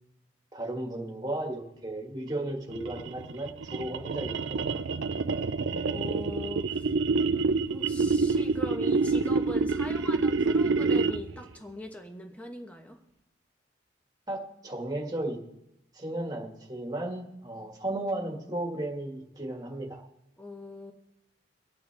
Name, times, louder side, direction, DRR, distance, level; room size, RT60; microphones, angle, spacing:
voice 1, 0.5-4.6 14.3-15.4 15.9-20.0, right 1 dB, 20° right, 0 dB, 1.8 m, -34 dB
sound 1, 2.7-11.4, right 4 dB, 80° right, 0.5 m, -27 dB
voice 2, 5.9-6.9 7.7-13.0 20.4-20.9, left 1 dB, 10° left, 3 dB, 1.1 m, -41 dB
25.0 x 8.7 x 3.4 m, 0.84 s
head